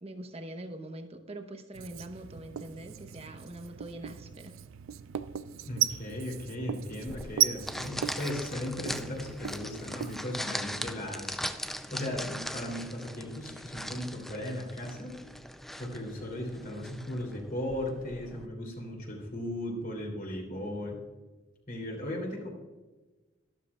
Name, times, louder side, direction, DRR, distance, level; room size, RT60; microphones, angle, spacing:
voice 1, 0.0-4.5, right 1 dB, 30° right, 6 dB, 0.9 m, -43 dB
Writing, 1.7-10.2, right 11 dB, 80° right, 0.4 m, -36 dB
voice 2, 5.6-15.1 15.8-21.0 21.7-22.5, left 1 dB, 45° left, 0 dB, 3.0 m, -37 dB
sound 1, 7.1-18.5, equal, ahead, 0.3 m, -40 dB
13.0 x 12.0 x 2.3 m, 1.2 s
head